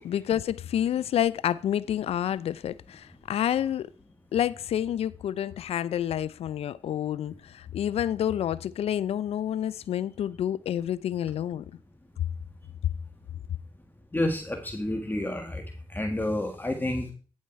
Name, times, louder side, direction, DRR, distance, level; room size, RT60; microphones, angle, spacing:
voice 1, 0.0-3.9 4.3-11.6, left 10 dB, 75° left, 0.4 m, -29 dB
voice 2, 14.1-15.6 15.9-17.1, left 1 dB, 20° left, 1.7 m, -29 dB
9.7 x 7.2 x 4.5 m
cardioid pair, 50°, 10 cm